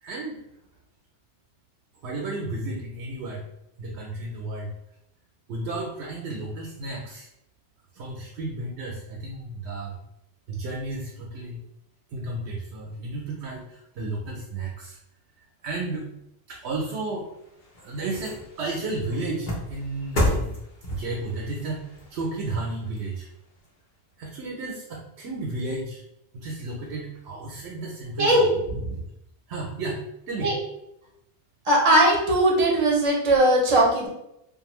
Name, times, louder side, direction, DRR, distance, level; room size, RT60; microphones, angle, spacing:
voice 1, 0.0-0.4 2.0-3.5 3.8-4.7 5.5-7.3 7.9-10.0 10.5-11.6 12.1-15.0 15.4-16.1 16.5-17.3 17.8-20.5 20.9-23.3 24.2-26.0 26.3-28.6 29.5-30.6, right 2 dB, 80° right, -1 dB, 0.9 m, -33 dB
Jumping Over Object While Hiking, 17.2-23.7 24.1-24.2, left 1 dB, 50° left, 0.8 m, -32 dB
voice 2, 31.6-34.1, right 1 dB, 35° right, -2 dB, 0.7 m, -19 dB
2.6 x 2.3 x 3.0 m, 0.82 s
omnidirectional pair, 1.1 m